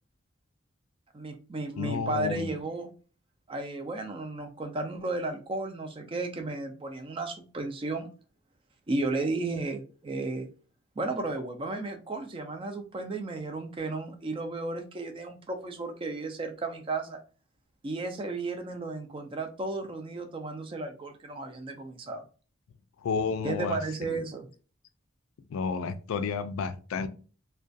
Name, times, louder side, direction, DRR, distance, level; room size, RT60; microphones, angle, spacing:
voice 1, 1.1-2.9 3.5-8.1 8.9-10.5 11.0-17.2 17.8-22.2 23.4-24.5, right 2 dB, 25° right, 5 dB, 0.3 m, -34 dB
voice 2, 1.8-2.5 23.0-23.8 24.1-24.2 25.5-27.1, left 5 dB, 80° left, 10 dB, 0.3 m, -31 dB
2.3 x 2.2 x 2.5 m, 0.38 s
head